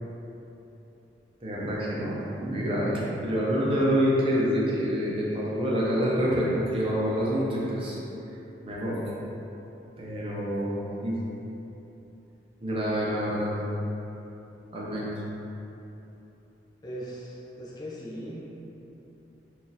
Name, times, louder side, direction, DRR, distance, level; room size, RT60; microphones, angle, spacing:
voice 1, 1.4-8.0 8.6-9.0 10.0-11.2 12.6-13.6 14.7-15.1, equal, 30° right, -6 dB, 0.5 m, -27 dB
voice 2, 16.8-18.5, equal, 20° left, -5 dB, 0.5 m, -39 dB
2.7 x 2.4 x 3.8 m, 3.0 s
head